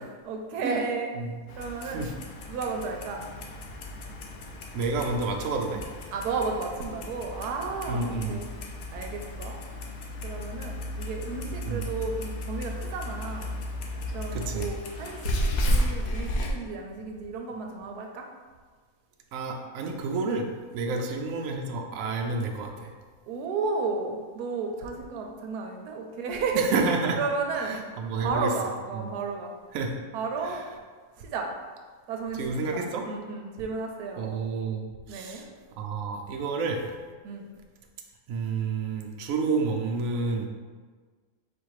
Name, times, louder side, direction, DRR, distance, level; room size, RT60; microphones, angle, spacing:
voice 1, 0.0-1.1 1.6-2.1 2.5-3.3 6.1-8.5 8.9-9.5 10.2-13.6 14.1-18.3 23.3-26.7 27.1-27.8 28.2-29.5 30.1-30.6 31.2-31.5 32.1-34.3 35.1-35.4 37.2-37.5, right 4 dB, 90° right, 2 dB, 1.1 m, -33 dB
Clock, 1.5-16.5, equal, 90° left, 1.2 m, -33 dB
voice 2, 4.7-5.8 7.9-8.4 11.6-11.8 14.3-14.7 19.3-22.9 26.5-27.2 27.6-28.5 28.9-29.1 29.7-29.9 30.4-30.6 32.3-33.0 34.2-35.4 35.8-36.8 38.3-40.5, right 4 dB, 70° right, 2 dB, 0.9 m, -30 dB
4.2 x 2.6 x 4.7 m, 1.5 s
omnidirectional pair, 1.6 m